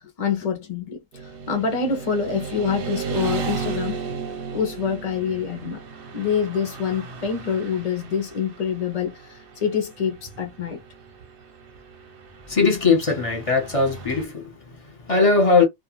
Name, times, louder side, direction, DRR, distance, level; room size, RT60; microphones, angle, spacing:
voice 1, 0.0-4.1 4.5-5.8 6.1-10.8, left 6 dB, 50° left, 0.5 m, -26 dB
Motorcycle / Traffic noise roadway noise, 1.1-14.2, right 5 dB, 55° right, 0.7 m, -35 dB
voice 2, 12.5-15.6, left 4 dB, 30° left, 0.9 m, -20 dB
2.3 x 2.2 x 3.0 m
omnidirectional pair, 1.4 m